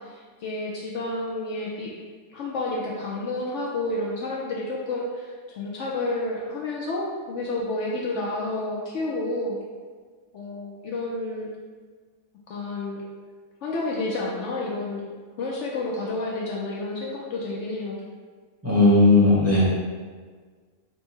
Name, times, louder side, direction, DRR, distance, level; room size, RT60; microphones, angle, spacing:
voice 1, 0.0-2.0 2.3-9.6 10.3-11.5 12.5-13.0 13.6-15.1 15.4-18.0, left 2 dB, 65° left, -3 dB, 0.8 m, -30 dB
voice 2, 18.6-19.6, left 2 dB, 10° right, -9 dB, 1.0 m, -16 dB
4.4 x 2.2 x 4.4 m, 1.5 s
omnidirectional pair, 1.4 m